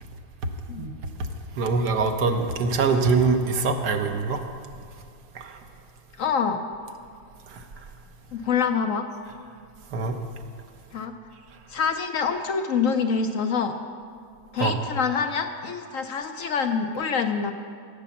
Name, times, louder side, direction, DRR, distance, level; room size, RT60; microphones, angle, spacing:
voice 1, 1.6-4.4 5.3-5.6 7.5-7.6 9.9-10.2 14.6-14.8, right 4 dB, 65° right, 5 dB, 1.5 m, -23 dB
voice 2, 6.2-6.6 8.3-9.1 10.9-11.1 11.7-13.8 14.5-17.5, left 6 dB, 65° left, 7 dB, 0.8 m, -26 dB
17.0 x 8.1 x 7.0 m, 2.3 s
omnidirectional pair, 2.0 m